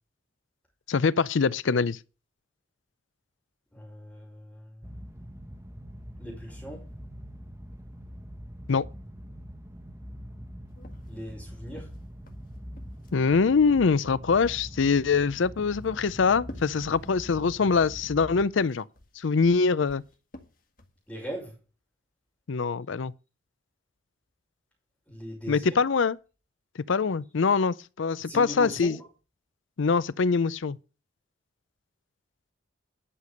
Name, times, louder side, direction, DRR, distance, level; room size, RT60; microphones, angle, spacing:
voice 1, 0.9-2.0 8.7-8.9 13.1-18.8 19.2-20.0 22.5-23.1 25.5-26.2 26.9-29.0 29.8-30.8, left 5 dB, 75° left, 0.5 m, -24 dB
voice 2, 3.7-4.9 6.2-6.9 11.1-11.9 21.1-21.5 25.1-25.8 28.2-29.1, equal, 5° left, 4.6 m, -39 dB
sound 1, 4.8-18.5, equal, 15° right, 1.0 m, -43 dB
sound 2, 10.8-13.4 15.1-17.5 18.4-21.0, left 1 dB, 45° left, 1.7 m, -49 dB
11.5 x 6.8 x 6.5 m
head